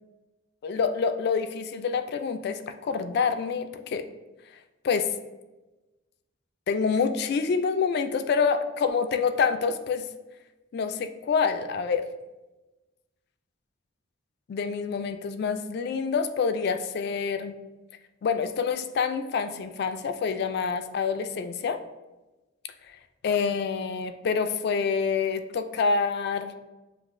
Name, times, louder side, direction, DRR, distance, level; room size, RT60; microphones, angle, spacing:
voice 1, 0.6-4.1 4.8-5.1 6.7-10.0 10.7-12.0 14.5-17.5 18.2-21.8 23.2-26.5, left 5 dB, 60° left, 9 dB, 0.3 m, -27 dB
7.2 x 2.7 x 2.5 m, 1.1 s
head